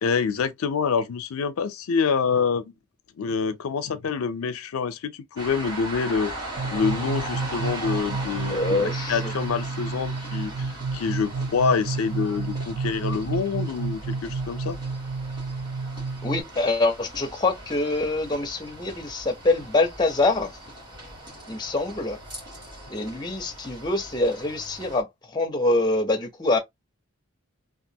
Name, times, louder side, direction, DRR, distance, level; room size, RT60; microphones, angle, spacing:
voice 1, 0.0-2.7 3.2-6.3 6.7-14.8, left 5 dB, 80° left, 0.5 m, -26 dB
sound 1, 5.4-25.0, right 1 dB, 20° right, 1.6 m, -39 dB
sound 2, 6.6-16.4, right 4 dB, 85° right, 0.6 m, -31 dB
voice 2, 8.5-9.3 16.2-20.5 21.5-22.2 22.9-26.6, left 2 dB, 20° left, 0.5 m, -25 dB
2.9 x 2.4 x 2.6 m
head